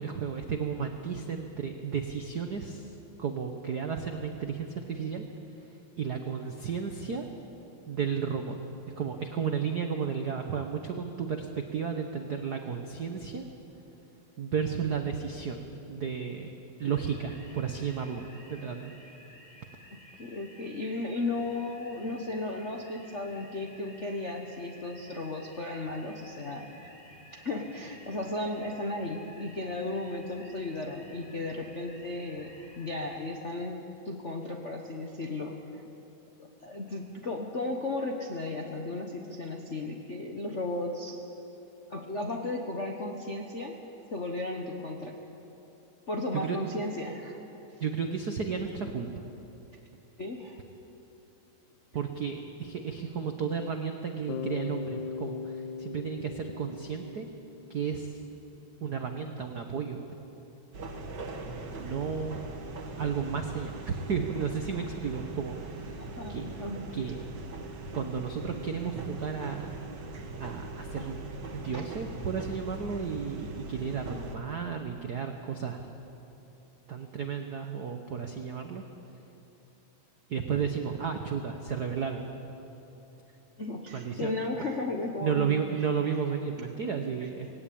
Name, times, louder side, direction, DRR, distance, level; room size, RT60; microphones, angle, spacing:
voice 1, 0.0-2.9 3.2-5.3 6.0-7.3 7.9-8.6 8.9-13.4 14.4-16.5 16.8-18.9 46.3-46.6 47.8-49.2 51.9-57.3 57.7-58.2 58.8-60.0 61.8-62.5 63.0-66.0 66.3-66.5 66.9-67.3 67.9-69.8 70.4-75.9 76.9-78.8 80.3-82.3 83.9-84.3 85.2-87.5, right 6 dB, 85° right, 5 dB, 0.8 m, -33 dB
sound 1, 16.8-33.2, equal, 15° left, 4.4 m, -53 dB
voice 2, 20.2-26.9 27.3-35.8 36.4-41.2 41.9-43.7 44.1-45.2 46.1-47.4 50.2-50.6 66.0-66.9 71.7-71.9 83.6-85.6 86.0-86.2, left 2 dB, 60° left, 1 dB, 0.7 m, -35 dB
Bass guitar, 54.3-58.2, left 6 dB, 85° left, 2.2 m, -39 dB
sound 2, 60.7-74.4, right 2 dB, 45° right, 1.7 m, -41 dB
20.0 x 17.5 x 8.6 m, 3.0 s
omnidirectional pair, 3.3 m